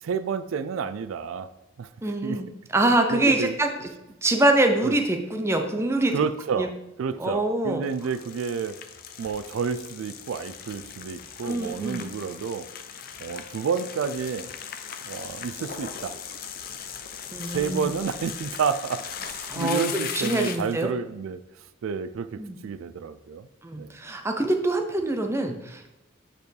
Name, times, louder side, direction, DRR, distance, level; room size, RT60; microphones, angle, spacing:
voice 1, 0.0-1.5 1.8-2.4 3.1-3.6 4.8-5.0 6.1-6.7 7.0-8.8 9.2-12.7 13.2-14.5 15.1-16.2 17.5-21.4 21.8-23.5 23.8-23.9, right 6 dB, 90° right, 14 dB, 0.3 m, -30 dB
voice 2, 2.0-2.5 2.7-3.7 4.2-6.1 6.6-6.7 7.2-7.8 11.4-12.0 17.3-17.9 19.5-20.9 22.4-22.6 23.6-25.9, right 1 dB, 15° right, 5 dB, 0.5 m, -24 dB
sound 1, 7.8-20.8, left 7 dB, 45° left, 0.5 m, -38 dB
8.2 x 4.4 x 3.3 m, 0.98 s
head